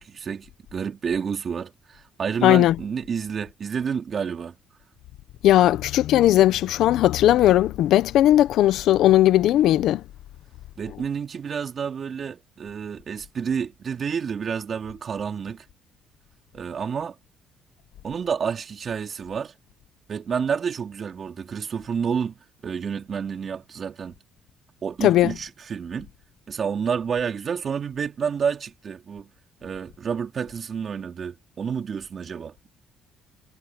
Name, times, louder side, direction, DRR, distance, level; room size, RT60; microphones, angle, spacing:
voice 1, 0.0-4.6 10.8-15.6 16.5-17.2 18.0-19.5 20.1-24.2 24.8-26.1 26.5-29.3 29.6-32.5, right 6 dB, 45° right, 3.3 m, -29 dB
voice 2, 2.4-2.8 5.4-10.0 25.0-25.3, left 13 dB, 75° left, 1.0 m, -18 dB
cardioid pair, 95°, 0 cm